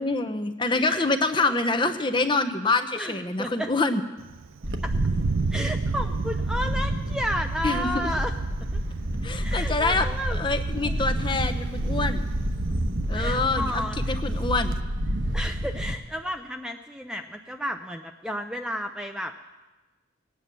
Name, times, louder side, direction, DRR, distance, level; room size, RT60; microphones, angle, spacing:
voice 1, 0.0-4.0 7.6-8.1 9.2-12.2 13.1-14.7, left 3 dB, 25° left, 9 dB, 0.8 m, -26 dB
voice 2, 0.7-1.1 1.4-1.5 3.0-3.7 4.8-4.9 5.5-8.3 8.7-8.8 9.4-10.4 10.8-11.1 13.1-14.0 15.3-19.3, equal, 5° right, 5 dB, 0.5 m, -32 dB
Thunder, 4.2-14.8, right 4 dB, 85° right, 0.5 m, -34 dB
Wind, 4.6-15.9, right 1 dB, 60° right, 1.1 m, -29 dB
18.5 x 9.2 x 6.8 m, 1.2 s
head